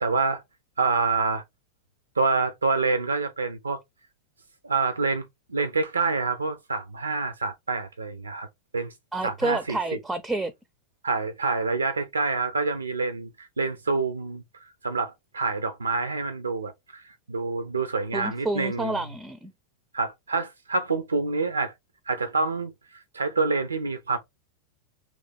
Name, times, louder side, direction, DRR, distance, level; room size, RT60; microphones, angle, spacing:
voice 1, 0.0-0.4 0.8-1.4 2.2-3.8 4.6-8.5 8.7-8.9 9.2-9.8 11.0-19.0 19.9-21.7 22.1-24.2, right 4 dB, 75° right, 0.4 m, -27 dB
voice 2, 9.1-10.5 18.1-19.5, right 2 dB, 5° right, 0.4 m, -29 dB
3.2 x 3.1 x 3.9 m
figure-of-eight pair, 90°, 0 cm